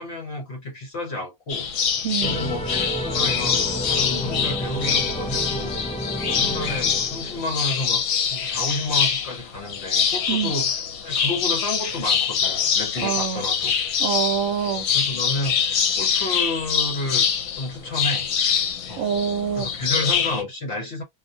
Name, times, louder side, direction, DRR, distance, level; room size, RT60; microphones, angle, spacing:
voice 1, 0.0-1.7 2.2-5.8 6.2-8.0 8.3-10.7 11.0-13.7 14.7-17.3 17.6-18.3 18.9-19.1 19.5-21.0, left 2 dB, 55° left, 1.2 m, -31 dB
sound 1, 1.5-20.4, left 7 dB, 75° left, 1.0 m, -24 dB
voice 2, 2.0-2.4 10.3-10.5 13.0-13.4 14.0-14.9 19.0-19.7, right 8 dB, 70° right, 0.8 m, -25 dB
sound 2, 2.2-7.8, equal, 10° left, 0.4 m, -30 dB
2.4 x 2.1 x 2.7 m
omnidirectional pair, 1.5 m